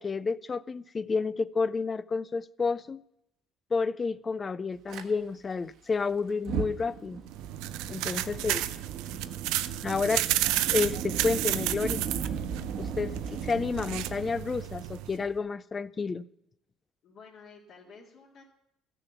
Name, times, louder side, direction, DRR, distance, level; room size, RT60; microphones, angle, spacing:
voice 1, 0.0-3.0 3.7-7.2 7.9-8.6 9.8-10.3 10.7-12.0 12.8-16.2, left 4 dB, 20° left, 0.4 m, -30 dB
Fire, 4.9-5.0 6.3-15.4, right 6 dB, 60° right, 1.3 m, -37 dB
sound 1, 7.3-15.2, right 14 dB, 85° right, 0.6 m, -32 dB
voice 2, 7.9-8.6 17.0-18.5, left 4 dB, 50° left, 2.1 m, -52 dB
15.0 x 7.0 x 7.0 m
cardioid pair, 150°, 0 cm